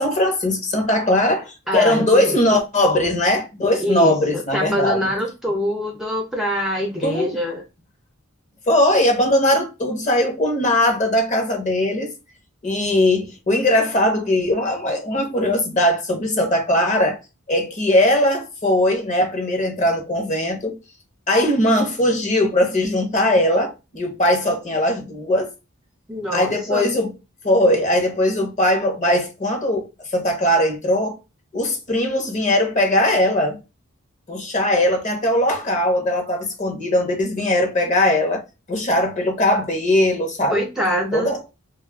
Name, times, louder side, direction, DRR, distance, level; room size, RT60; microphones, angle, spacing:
voice 1, 0.0-5.1 7.0-7.3 8.7-12.1 12.6-17.2 17.5-20.8 21.3-25.5 26.3-27.1 27.4-29.9 30.1-31.2 31.5-33.6 34.3-38.4 38.7-40.6 41.1-41.4, left 1 dB, 35° left, 0.8 m, -20 dB
voice 2, 1.7-2.6 3.8-7.6 26.1-26.8 40.5-41.3, equal, ahead, 0.4 m, -24 dB
2.5 x 2.3 x 3.5 m
head